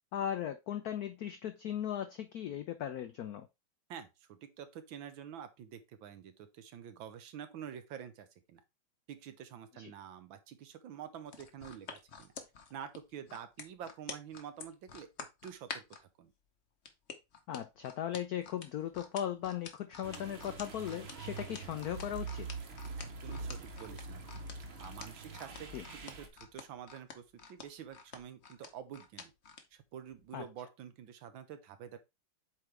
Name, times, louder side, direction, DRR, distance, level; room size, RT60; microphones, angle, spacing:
voice 1, 0.1-3.5 9.8-9.9 17.5-22.5 25.7-25.8 30.3-30.4, left 10 dB, 85° left, 0.8 m, -38 dB
voice 2, 3.9-8.6 9.1-12.3 12.7-15.1 15.4-15.8 16.2-16.3 23.0-24.4 24.8-29.3 29.7-32.0, right 9 dB, 75° right, 1.6 m, -48 dB
sound 1, 11.3-16.0 16.9-29.7 30.1-30.3, left 5 dB, 50° left, 0.8 m, -48 dB
sound 2, 20.0-26.3, right 4 dB, 45° right, 0.8 m, -44 dB
8.1 x 3.8 x 3.3 m
omnidirectional pair, 2.2 m